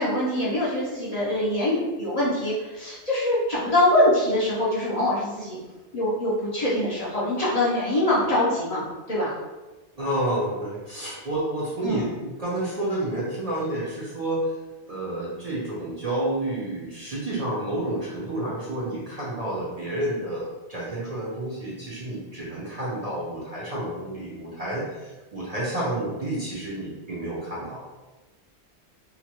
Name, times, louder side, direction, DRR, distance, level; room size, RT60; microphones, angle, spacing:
voice 1, 0.0-5.6 5.9-9.3 11.8-12.1, left 1 dB, 45° left, -8 dB, 0.6 m, -24 dB
voice 2, 10.0-14.5 14.8-27.8, right 1 dB, 50° right, -7 dB, 0.5 m, -30 dB
2.8 x 2.2 x 2.8 m, 1.2 s
omnidirectional pair, 1.1 m